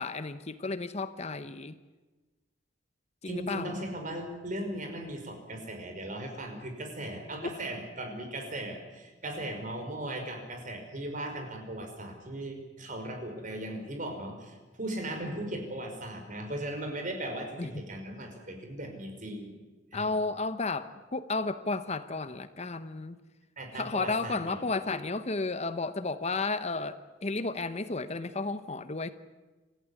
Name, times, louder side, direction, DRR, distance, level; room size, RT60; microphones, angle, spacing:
voice 1, 0.0-1.7 3.2-3.8 17.6-17.7 19.9-23.2 23.7-29.1, left 3 dB, 35° left, 12 dB, 1.0 m, -33 dB
voice 2, 3.3-19.5 19.9-20.1 23.6-24.6, right 1 dB, 45° right, 5 dB, 5.4 m, -38 dB
27.0 x 15.0 x 9.7 m, 1.2 s
head